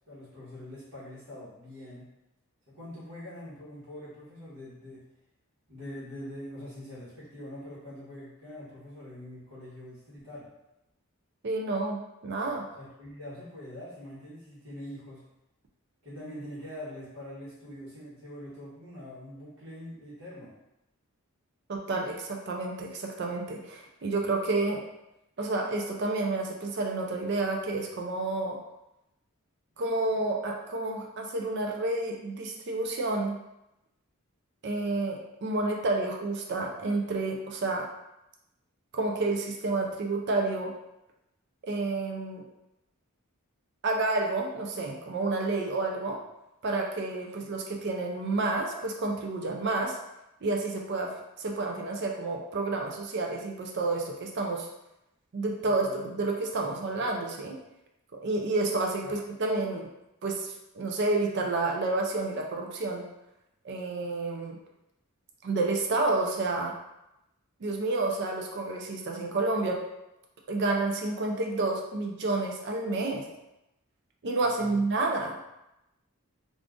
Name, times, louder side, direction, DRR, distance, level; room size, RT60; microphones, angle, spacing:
voice 1, 0.1-2.1 2.7-5.0 5.7-10.5 12.8-15.2 16.0-20.5 55.6-56.1 56.6-56.8 59.0-59.2 73.1-73.2 74.5-74.8 75.2-75.3, left 1 dB, 70° right, -10 dB, 1.2 m, -44 dB
voice 2, 11.4-12.6 21.7-24.8 25.4-28.6 29.8-33.3 34.6-37.9 38.9-40.7 41.6-42.4 43.8-46.2 46.6-50.0 50.4-51.1 51.4-54.7 55.3-57.6 58.2-59.9 60.2-63.0 63.6-64.6 65.4-66.7 67.6-69.8 70.5-73.2 74.2-75.4, right 2 dB, 50° right, 1 dB, 0.4 m, -30 dB
2.5 x 2.4 x 3.5 m, 0.90 s
head